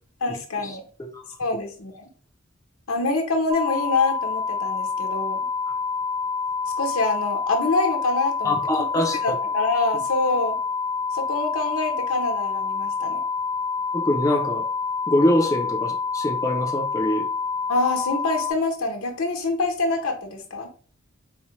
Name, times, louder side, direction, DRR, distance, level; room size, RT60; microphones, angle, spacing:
voice 1, 0.2-0.8 1.4-2.0 2.9-5.5 6.8-8.6 8.9-10.6 11.1-13.2 17.7-20.7, left 3 dB, 75° left, 2 dB, 0.9 m, -25 dB
sound 1, 3.5-18.5, left 5 dB, 25° right, 0.8 m, -27 dB
voice 2, 8.4-9.4 9.9-10.0 13.9-14.7 15.1-17.3, left 1 dB, 15° left, 0 dB, 0.5 m, -24 dB
4.2 x 2.2 x 3.1 m, 0.38 s
head